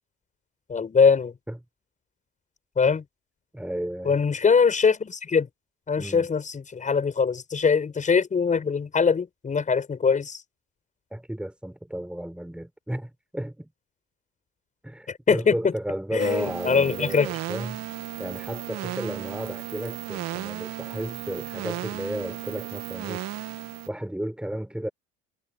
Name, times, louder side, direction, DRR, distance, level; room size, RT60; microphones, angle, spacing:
voice 1, 0.7-1.3 2.8-3.0 4.0-5.5 5.9-10.4 15.1-15.5 16.1-17.3, left 5 dB, 25° left, 6.1 m, -22 dB
voice 2, 3.5-4.2 6.0-6.3 11.1-13.7 14.8-17.8 18.2-23.3 23.9-24.9, right 1 dB, 5° right, 5.9 m, -33 dB
sound 1, 16.2-23.9, right 15 dB, 60° right, 2.8 m, -35 dB
supercardioid pair, 100°, 30 cm